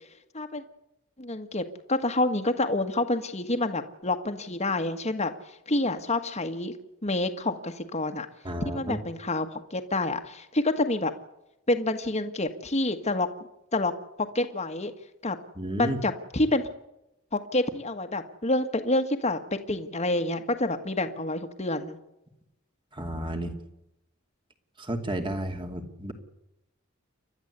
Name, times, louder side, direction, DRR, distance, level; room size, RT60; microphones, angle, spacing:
voice 1, 1.2-5.3 5.7-6.7 7.0-8.3 8.7-11.1 11.7-13.3 13.7-13.9 14.2-14.9 15.2-15.4 15.8-16.6 17.3-19.4 19.7-22.0, left 2 dB, 35° left, 6 dB, 1.7 m, -28 dB
voice 2, 8.4-9.0 15.6-16.0 22.9-23.5 24.8-26.1, right 1 dB, 25° right, 6 dB, 2.7 m, -32 dB
29.5 x 12.5 x 8.3 m, 0.88 s
head